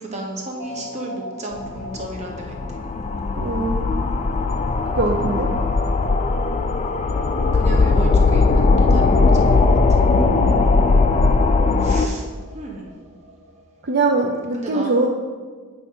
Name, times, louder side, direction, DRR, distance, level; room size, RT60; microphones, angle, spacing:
voice 1, 0.0-2.8 7.5-10.0 11.8-12.9 14.5-15.1, right 1 dB, 30° right, 0 dB, 1.0 m, -34 dB
sound 1, 0.6-14.4, equal, 65° right, 1.0 m, -37 dB
sound 2, 1.6-12.1, left 3 dB, 30° left, 0.3 m, -18 dB
voice 2, 3.4-4.0 5.0-5.5 10.1-10.6 13.8-15.1, right 3 dB, 45° right, 1 dB, 0.5 m, -22 dB
8.7 x 5.2 x 3.8 m, 1.5 s
head